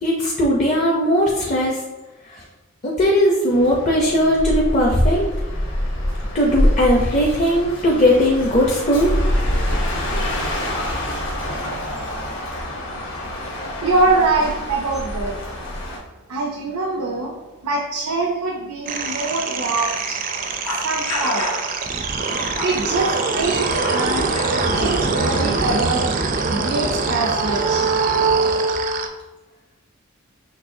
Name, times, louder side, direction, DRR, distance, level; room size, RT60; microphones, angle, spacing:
voice 1, 0.0-1.8 2.8-5.2 6.3-9.1, equal, 35° left, -3 dB, 0.6 m, -18 dB
sound 1, 3.5-16.0, left 1 dB, 60° left, 1.2 m, -25 dB
voice 2, 13.4-15.4 16.3-17.3 17.6-20.2 20.7-21.5 22.5-24.3 24.6-26.0 26.5-27.9, right 3 dB, 90° right, 1 dB, 0.6 m, -24 dB
sound 2, 18.9-29.1, right 4 dB, 40° right, 0.4 m, -22 dB
sound 3, 20.7-21.7 22.3-24.1 24.3-24.6 25.4-26.1, left 1 dB, 85° left, 1.1 m, -30 dB
5.9 x 3.1 x 2.7 m, 1.1 s
head